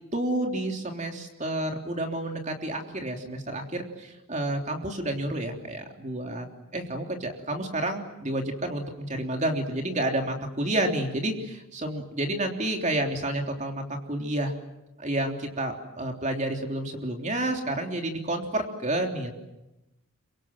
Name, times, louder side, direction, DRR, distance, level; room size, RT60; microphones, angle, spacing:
voice 1, 0.1-6.5 6.7-13.8 14.1-14.5 15.0-19.3, right 1 dB, 30° right, 3 dB, 3.4 m, -30 dB
26.5 x 24.0 x 7.5 m, 0.96 s
head